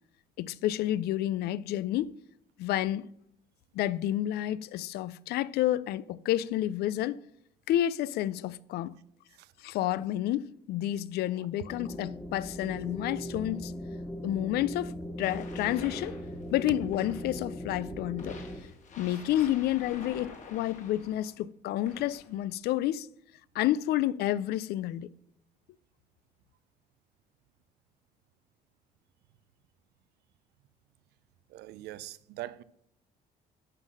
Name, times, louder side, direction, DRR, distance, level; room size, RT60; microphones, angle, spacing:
voice 1, 0.4-2.1 2.6-3.1 3.7-7.2 7.7-9.0 9.6-13.7 14.2-16.2 16.5-18.4 19.0-23.1 23.5-25.1, left 13 dB, 70° left, 0.4 m, -30 dB
sound 1, 11.7-18.6, equal, 5° left, 0.9 m, -39 dB
sound 2, 15.2-17.5 18.2-21.3 21.8-22.4, left 4 dB, 45° left, 1.8 m, -47 dB
voice 2, 31.5-32.6, right 15 dB, 80° right, 0.5 m, -43 dB
11.5 x 3.8 x 6.2 m
cardioid pair, 110°, 17 cm